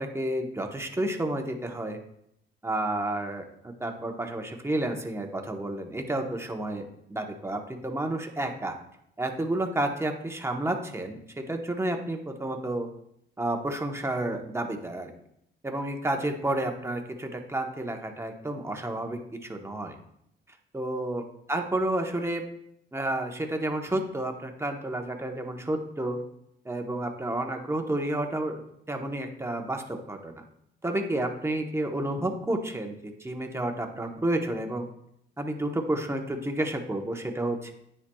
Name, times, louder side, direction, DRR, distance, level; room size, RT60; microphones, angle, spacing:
voice 1, 0.0-2.0 2.6-6.8 7.1-8.7 9.2-12.9 13.4-15.1 15.6-19.9 20.7-21.2 21.5-22.4 22.9-26.2 26.6-28.6 28.9-30.4 30.8-32.9 33.2-34.9 35.4-37.7, right 1 dB, 15° right, 3 dB, 1.0 m, -30 dB
9.5 x 5.7 x 2.3 m, 0.75 s
cardioid pair, 90°, 20 cm